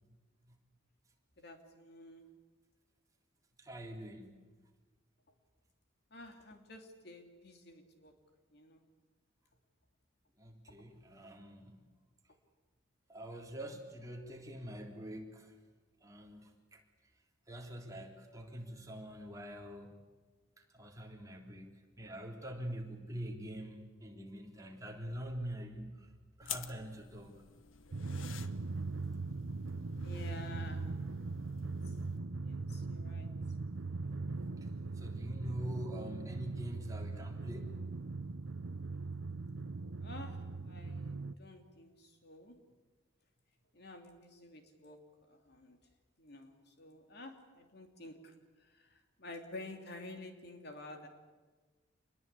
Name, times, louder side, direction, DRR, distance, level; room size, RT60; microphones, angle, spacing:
voice 1, 1.4-2.3 6.1-8.1 8.5-8.8 30.0-31.0 31.9-32.0 32.4-33.3 40.0-42.6 43.7-45.0 45.3-45.8 46.2-51.1, left 2 dB, 55° left, 5 dB, 2.9 m, -51 dB
voice 2, 3.6-4.5 10.4-11.8 13.1-15.5 16.0-16.8 17.5-19.9 20.7-26.1 26.4-27.3 30.1-30.2 34.6-34.7 34.9-37.8, equal, 15° right, 1 dB, 3.3 m, -45 dB
sound 1, 26.4-32.2, left 9 dB, 85° left, 1.3 m, -50 dB
Drum, 27.9-41.3, right 3 dB, 80° right, 0.8 m, -40 dB
27.0 x 21.0 x 8.4 m, 1.3 s
head